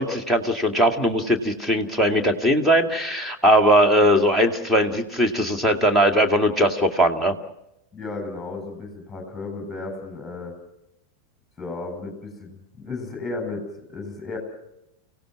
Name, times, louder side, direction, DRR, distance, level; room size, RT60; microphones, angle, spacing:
voice 1, 0.0-7.4, equal, 10° right, 5 dB, 2.2 m, -20 dB
voice 2, 7.9-10.5 11.6-14.4, left 3 dB, 10° left, 4 dB, 8.0 m, -34 dB
29.5 x 17.5 x 6.1 m, 0.85 s
figure-of-eight pair, 90°, 0 cm